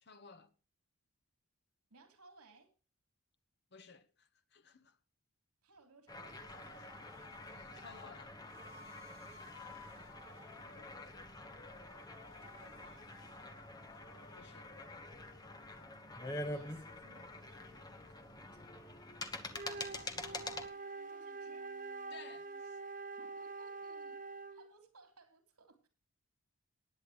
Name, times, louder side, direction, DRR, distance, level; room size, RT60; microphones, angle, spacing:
voice 1, 0.0-0.5 3.7-5.0 7.5-8.4 14.3-14.7 20.0-20.5 22.1-22.8, left 5 dB, 50° left, 1.0 m, -57 dB
voice 2, 1.9-2.7 5.6-6.9 9.5-9.9 10.5-11.4 12.4-13.1 15.8-19.2 21.1-21.7 23.0-25.9, right 3 dB, 90° right, 3.2 m, -64 dB
sound 1, 6.1-20.7, left 2 dB, 15° left, 1.3 m, -47 dB
sound 2, 6.5-8.1 8.5-15.9 16.3-22.6, left 3 dB, 65° left, 3.2 m, -60 dB
Wind instrument woodwind instrument, 19.5-24.7, right 3 dB, 35° right, 0.6 m, -46 dB
19.5 x 8.9 x 3.1 m
head